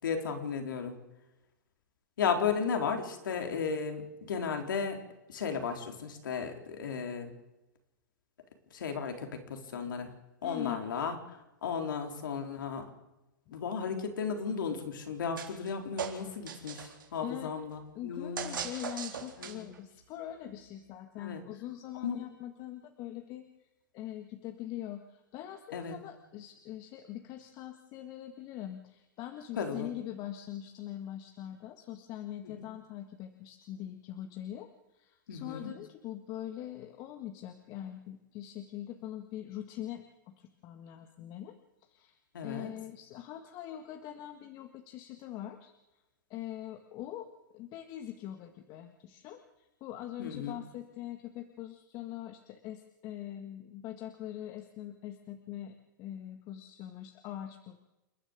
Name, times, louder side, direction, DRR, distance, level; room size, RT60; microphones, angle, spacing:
voice 1, 0.0-1.0 2.2-5.0 5.3-7.3 8.7-10.1 10.4-12.8 13.5-18.5 19.4-19.7 21.2-21.4 22.0-22.2 25.7-25.9 29.5-29.9 32.4-32.7 35.3-35.7 42.3-42.7 50.2-50.6, left 6 dB, 80° left, 5 dB, 4.0 m, -35 dB
voice 2, 10.4-10.8 13.5-13.6 17.2-17.5 18.0-23.7 23.9-41.6 41.8-45.7 46.3-57.8, left 12 dB, 40° left, 6 dB, 1.8 m, -43 dB
sound 1, 15.4-15.7 16.0-17.0 18.4-19.8, right 7 dB, 90° right, 3.7 m, -39 dB
29.0 x 11.0 x 8.1 m, 0.98 s
hypercardioid pair, 130°, 11 cm